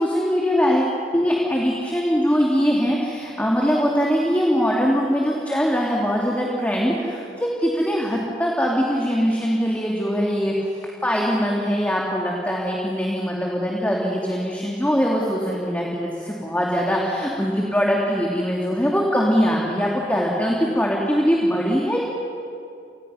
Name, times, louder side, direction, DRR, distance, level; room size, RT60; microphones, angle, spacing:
voice 1, 0.0-10.7 11.0-22.0, equal, 10° left, -3 dB, 2.4 m, -22 dB
28.5 x 20.5 x 5.6 m, 2.5 s
head